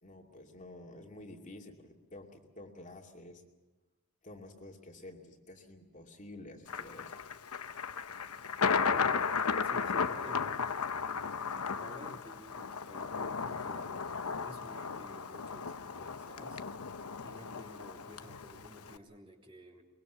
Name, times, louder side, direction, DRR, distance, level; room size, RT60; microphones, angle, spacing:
voice 1, 0.0-3.4 4.2-7.2, left 1 dB, 35° left, 1 dB, 2.5 m, -50 dB
Thunder, 6.7-19.0, left 5 dB, 85° left, 0.9 m, -35 dB
voice 2, 8.9-9.3 9.6-10.8 11.7-14.1 14.4-16.6 17.2-19.8, equal, 25° right, 1 dB, 3.2 m, -52 dB
23.5 x 22.5 x 6.9 m, 1.2 s
head